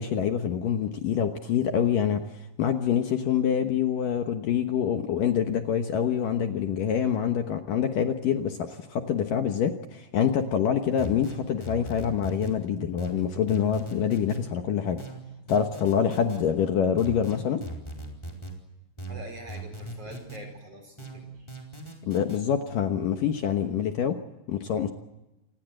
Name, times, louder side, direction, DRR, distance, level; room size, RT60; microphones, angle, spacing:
voice 1, 0.0-2.2 2.6-15.0 15.5-17.6 22.1-24.2 24.5-24.9, left 8 dB, 65° left, 6 dB, 2.2 m, -26 dB
sound 1, 11.0-12.6 13.0-14.4 15.0-16.4 17.0-18.6 19.0-20.4 21.0-22.4, right 2 dB, 5° left, 4.0 m, -39 dB
voice 2, 19.1-21.5, equal, 35° right, 5 dB, 4.7 m, -44 dB
28.5 x 20.0 x 7.8 m, 1.0 s
omnidirectional pair, 5.4 m